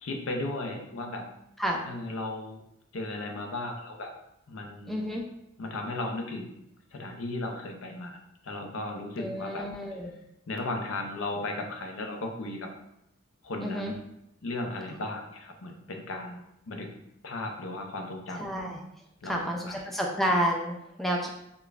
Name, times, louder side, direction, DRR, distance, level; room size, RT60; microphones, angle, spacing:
voice 1, 0.0-1.3 1.9-2.6 2.9-4.1 4.5-5.0 5.6-6.6 6.9-9.7 10.5-12.7 13.4-14.0 14.4-16.4 16.7-16.9 17.2-18.4 19.2-19.8, left 2 dB, 85° left, 3 dB, 0.5 m, -35 dB
voice 2, 4.9-5.2 9.2-10.2 13.6-13.9 18.4-18.8 19.2-21.3, equal, ahead, 0 dB, 0.3 m, -30 dB
4.9 x 2.2 x 2.4 m, 0.83 s
head